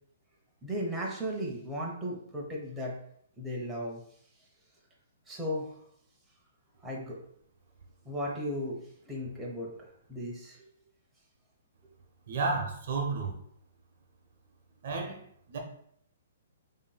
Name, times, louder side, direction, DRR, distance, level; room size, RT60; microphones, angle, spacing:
voice 1, 0.6-3.0 3.4-4.0 5.3-5.8 6.8-7.2 8.0-10.6, equal, 10° right, -3 dB, 0.8 m, -36 dB
voice 2, 12.3-13.4 14.8-15.6, right 4 dB, 60° right, 1 dB, 0.8 m, -32 dB
5.1 x 2.7 x 2.3 m, 0.68 s
hypercardioid pair, 145°, 0 cm